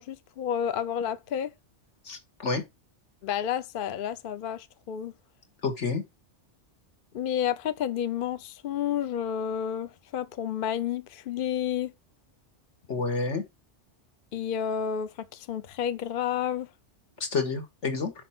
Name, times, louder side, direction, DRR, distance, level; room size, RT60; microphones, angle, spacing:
voice 1, 0.0-1.5 3.2-5.1 7.1-11.9 14.3-16.7, left 9 dB, 55° left, 0.7 m, -30 dB
voice 2, 2.1-2.6 5.6-6.0 12.9-13.4 17.2-18.1, left 4 dB, 75° left, 1.9 m, -29 dB
5.9 x 4.5 x 5.8 m
omnidirectional pair, 1.2 m